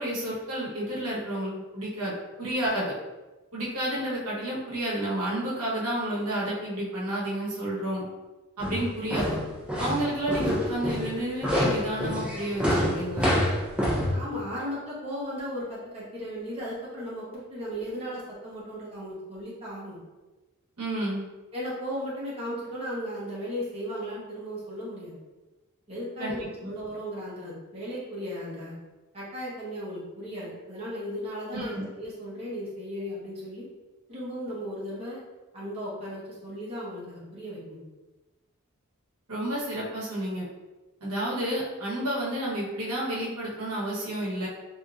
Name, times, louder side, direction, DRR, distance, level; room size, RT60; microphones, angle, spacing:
voice 1, 0.0-2.9 3.5-8.0 8.6-9.4 9.8-13.4 20.8-21.3 26.2-26.4 26.6-26.7 31.5-31.8 39.3-40.4 41.0-44.5, right 1 dB, 80° right, -6 dB, 1.0 m, -30 dB
sound 1, 8.6-14.1, equal, 5° right, 0.6 m, -27 dB
voice 2, 14.1-20.0 21.5-25.1 25.9-28.7 29.1-33.7 34.1-35.2 35.5-37.8, equal, 30° right, -8 dB, 1.1 m, -36 dB
3.5 x 2.7 x 2.4 m, 1.1 s
head